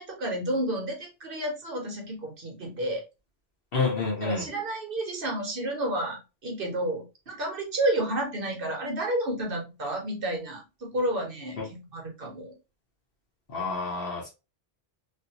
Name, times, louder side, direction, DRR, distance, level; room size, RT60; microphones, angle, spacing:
voice 1, 0.0-3.0 4.2-12.5, right 1 dB, 65° right, 1 dB, 1.2 m, -31 dB
voice 2, 3.7-4.4 11.6-11.7 13.5-14.3, left 4 dB, 65° left, -4 dB, 1.2 m, -28 dB
3.2 x 2.6 x 2.8 m, 0.28 s
omnidirectional pair, 1.0 m